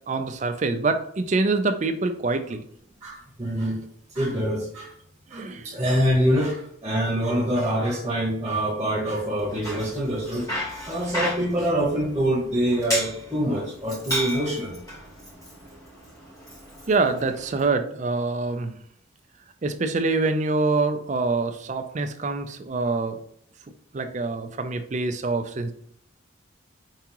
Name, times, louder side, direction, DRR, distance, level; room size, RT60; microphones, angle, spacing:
voice 1, 0.1-2.6 5.3-5.8 16.9-18.8 19.6-23.2 23.9-25.7, right 3 dB, 35° right, 7 dB, 0.4 m, -25 dB
voice 2, 3.0-3.8 4.1-4.9 5.3-10.5 10.8-14.8, equal, 15° right, -3 dB, 1.0 m, -25 dB
Bicycle, 9.4-17.7, equal, 15° left, 1.8 m, -34 dB
4.8 x 3.5 x 2.9 m, 0.66 s
head